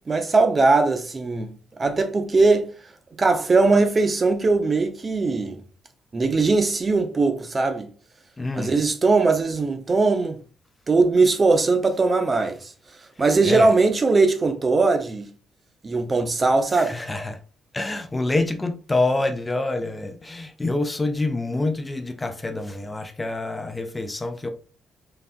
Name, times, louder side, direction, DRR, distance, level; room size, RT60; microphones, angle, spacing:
voice 1, 0.1-2.7 3.2-5.6 6.1-7.9 8.5-10.4 10.9-12.7 13.2-15.3 15.8-17.0, right 3 dB, 30° right, 0.6 m, -20 dB
voice 2, 8.4-8.8 13.4-13.7 16.7-17.4 17.7-24.5, left 2 dB, 15° left, 0.6 m, -26 dB
4.0 x 3.3 x 2.4 m
cardioid pair, 90°, 0 cm